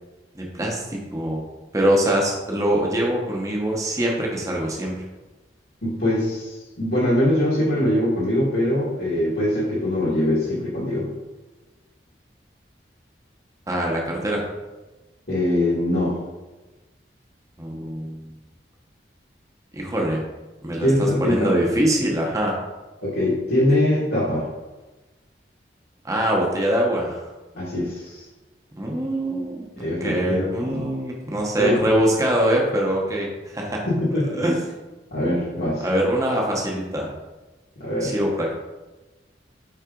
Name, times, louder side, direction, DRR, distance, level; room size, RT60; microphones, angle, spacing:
voice 1, 0.3-1.4 1.7-5.0 13.7-14.4 17.6-18.3 19.7-20.2 20.6-22.6 26.0-27.2 28.8-29.6 30.0-33.8 34.3-34.6 35.8-37.1 38.0-38.5, right 1 dB, 20° right, -1 dB, 0.8 m, -23 dB
voice 2, 5.8-11.1 15.3-16.2 20.8-21.5 23.0-24.5 27.5-28.2 29.8-30.8 31.6-31.9 33.9-34.4 35.1-35.8 37.8-38.1, left 1 dB, 65° left, -9 dB, 1.8 m, -22 dB
5.6 x 4.7 x 3.8 m, 1.2 s
head